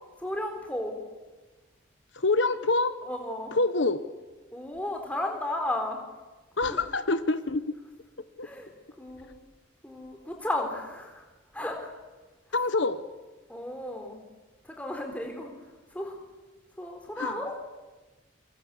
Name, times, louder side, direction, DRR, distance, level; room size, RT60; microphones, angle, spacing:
voice 1, 0.2-1.0 3.1-3.5 4.5-6.0 6.6-6.8 8.4-8.7 9.0-9.3 9.8-11.2 11.5-11.9 13.5-14.2 14.6-15.5 15.9-16.2 16.8-17.6, left 1 dB, 5° left, 2 dB, 4.2 m, -34 dB
voice 2, 2.1-2.9 3.5-4.0 6.6-7.8 8.4-8.5 12.5-13.0 17.2-17.3, left 3 dB, 75° left, 12 dB, 1.1 m, -26 dB
26.5 x 25.0 x 8.5 m, 1.2 s
head